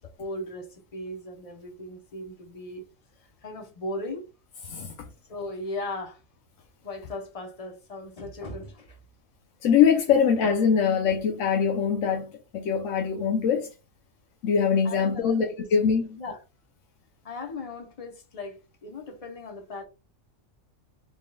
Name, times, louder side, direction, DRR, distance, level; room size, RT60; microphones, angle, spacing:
voice 1, 0.2-2.8 3.4-4.2 5.3-6.2 6.8-9.0 14.8-15.7 16.2-16.4 17.2-19.8, left 2 dB, 35° left, 0.8 m, -37 dB
voice 2, 9.6-13.7 14.4-16.2, left 7 dB, 75° left, 1.0 m, -23 dB
3.9 x 3.6 x 2.3 m
omnidirectional pair, 1.3 m